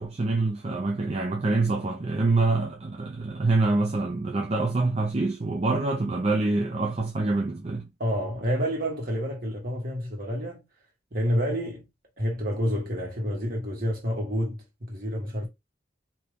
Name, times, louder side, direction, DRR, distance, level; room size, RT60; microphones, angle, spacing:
voice 1, 0.0-7.9, right 3 dB, 35° right, 0.5 m, -26 dB
voice 2, 8.0-10.6 11.1-11.8 12.2-15.5, equal, 50° right, 1.6 m, -29 dB
2.9 x 2.6 x 3.4 m
head